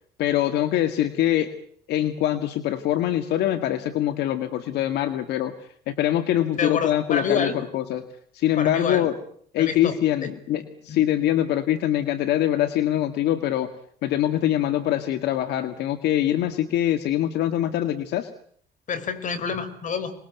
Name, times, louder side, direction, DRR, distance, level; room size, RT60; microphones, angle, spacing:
voice 1, 0.2-1.5 1.9-8.0 8.3-9.2 9.5-13.7 14.0-18.3, left 12 dB, 80° left, 10 dB, 1.9 m, -24 dB
voice 2, 6.6-7.6 8.6-9.1 9.6-10.0 10.2-10.3 10.9-11.0 18.9-20.1, left 6 dB, 50° left, 13 dB, 4.9 m, -27 dB
27.0 x 20.5 x 9.3 m, 0.63 s
cardioid pair, 110°, 17 cm